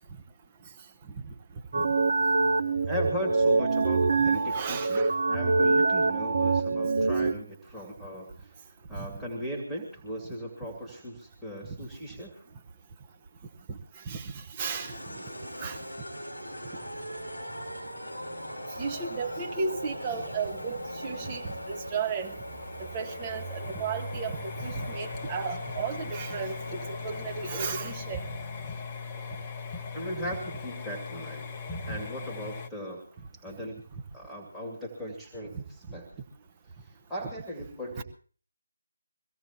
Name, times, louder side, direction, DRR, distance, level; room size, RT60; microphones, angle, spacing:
sound 1, 1.7-7.3, right 3 dB, 50° right, 1.0 m, -25 dB
voice 1, 2.8-8.6 8.9-12.4 29.9-31.5 31.9-33.0 33.4-33.8 34.1-36.1 36.8-38.0, equal, ahead, 2.3 m, -38 dB
voice 2, 4.2-5.1 7.0-7.1 8.9-9.1 11.7-11.8 13.7-15.2 15.6-15.8 18.8-22.4 22.8-28.3 35.5-35.6 38.0-38.1, right 5 dB, 20° right, 1.2 m, -34 dB
sound 2, 14.6-28.8, equal, 85° right, 3.7 m, -40 dB
sound 3, 20.5-32.7, left 4 dB, 20° left, 0.9 m, -40 dB
23.5 x 16.5 x 2.9 m
figure-of-eight pair, 155°, 0 cm